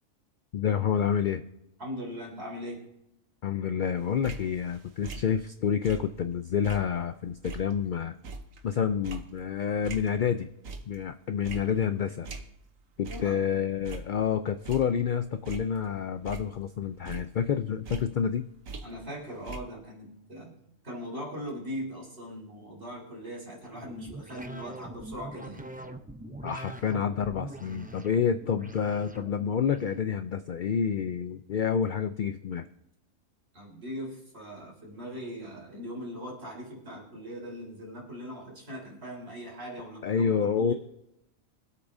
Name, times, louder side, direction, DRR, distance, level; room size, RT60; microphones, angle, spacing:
voice 1, 0.5-1.4 3.4-8.1 8.6-10.5 10.9-12.3 13.0-18.5 26.4-32.7 40.0-40.7, left 7 dB, 60° left, 8 dB, 0.5 m, -28 dB
voice 2, 1.8-2.8 13.1-13.4 18.8-20.5 20.8-25.6 33.5-40.8, equal, 50° right, -3 dB, 4.1 m, -40 dB
sound 1, 4.0-6.3 6.6-10.3 10.6-11.1 11.4-12.8 13.0-13.4 13.7-15.1 15.5-16.8 17.1-19.2 19.5-19.6, right 3 dB, 85° right, 1.4 m, -43 dB
sound 2, 23.6-30.0, right 1 dB, 10° right, 0.5 m, -43 dB
25.0 x 8.3 x 2.7 m, 0.86 s
omnidirectional pair, 1.4 m